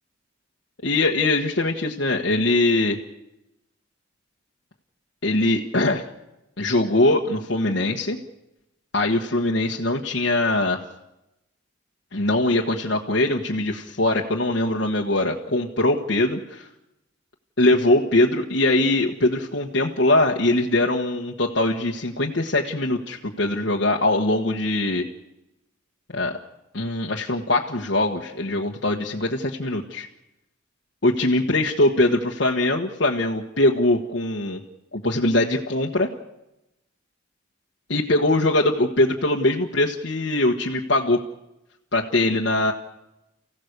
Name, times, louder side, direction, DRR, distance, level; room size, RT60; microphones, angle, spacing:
voice 1, 0.8-3.0 5.2-6.0 6.6-8.2 8.9-10.8 12.1-16.7 17.6-25.0 26.1-26.4 26.7-30.1 31.0-34.6 34.9-36.1 37.9-41.2 41.9-42.7, left 2 dB, 70° left, -1 dB, 1.3 m, -22 dB
29.5 x 16.0 x 6.7 m, 0.93 s
head